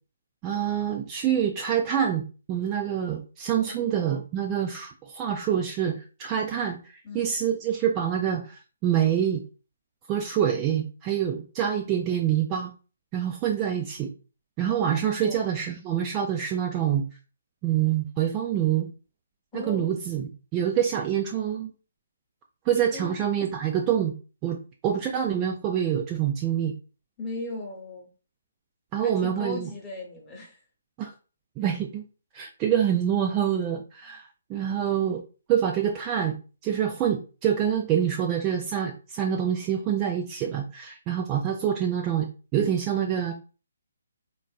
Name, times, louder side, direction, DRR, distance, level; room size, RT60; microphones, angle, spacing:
voice 1, 0.4-9.4 10.1-12.7 13.1-14.1 14.6-17.1 17.6-18.9 19.5-21.7 22.7-24.1 24.4-24.6 24.8-26.7 28.9-29.7 31.0-31.1 31.6-32.0 32.3-35.2 35.5-36.4 36.6-43.3, right 9 dB, 20° right, 1 dB, 0.3 m, -26 dB
voice 2, 3.5-3.9 7.0-7.3 15.2-15.5 19.5-20.0 22.9-23.1 27.2-28.1 28.9-30.6, left 2 dB, 15° left, -2 dB, 0.9 m, -37 dB
3.8 x 2.5 x 2.3 m, 0.35 s
figure-of-eight pair, 135°, 0 cm